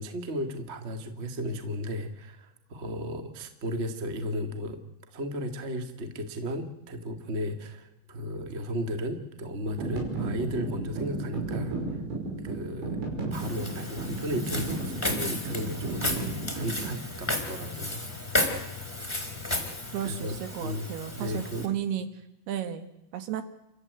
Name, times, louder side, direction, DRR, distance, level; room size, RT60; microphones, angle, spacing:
voice 1, 0.0-4.8 5.1-12.0 12.3-13.0 13.3-18.6 20.0-20.3 20.6-21.7, equal, 30° right, 7 dB, 1.1 m, -35 dB
sound 1, 9.6-17.0, right 3 dB, 90° right, 7.7 m, -34 dB
Walk footsteps, 13.3-21.7, left 2 dB, 5° left, 3.4 m, -33 dB
voice 2, 19.9-22.1 22.5-23.4, right 10 dB, 70° right, 10 dB, 3.3 m, -33 dB
30.0 x 13.5 x 9.5 m, 0.95 s
omnidirectional pair, 5.1 m